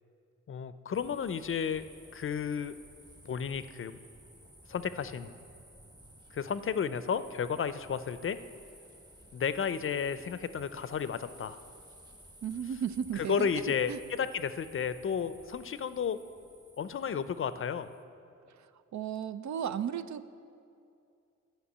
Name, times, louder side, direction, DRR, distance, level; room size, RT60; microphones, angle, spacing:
voice 1, 0.5-1.8 2.1-2.8 3.3-4.0 4.7-5.3 6.3-8.4 9.3-11.6 13.1-16.2 16.8-17.9, left 7 dB, 45° left, 13 dB, 0.5 m, -32 dB
sound 1, 0.9-18.0, right 1 dB, 15° right, 1.1 m, -55 dB
voice 2, 12.4-14.0 18.5-20.3, right 8 dB, 70° right, 13 dB, 0.5 m, -35 dB
11.5 x 5.8 x 8.3 m, 2.5 s
cardioid pair, 90°, 29 cm